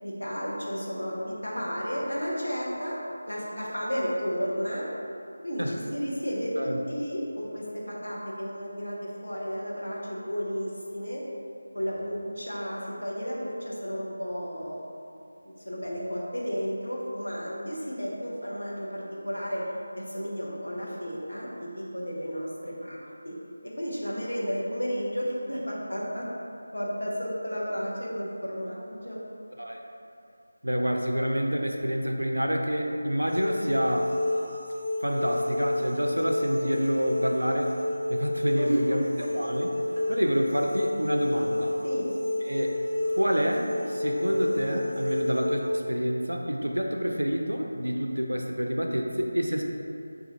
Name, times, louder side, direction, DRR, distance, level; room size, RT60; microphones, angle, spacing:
voice 1, 0.0-3.0 3.3-4.9 5.4-5.6 5.9-11.2 11.7-14.8 15.4-19.6 20.0-23.3 23.6-26.3 26.7-29.2 38.6-39.3 40.0-40.1 41.8-42.1, equal, 85° left, -4 dB, 0.8 m, -32 dB
voice 2, 30.6-34.1 35.0-37.7 38.1-39.1 39.3-39.7 40.1-41.8 42.5-42.8 43.2-49.6, equal, 85° right, 2 dB, 0.4 m, -28 dB
sound 1, 33.2-45.7, left 1 dB, 20° right, 1.4 m, -30 dB
4.3 x 2.4 x 2.6 m, 2.5 s
figure-of-eight pair, 165°, 0 cm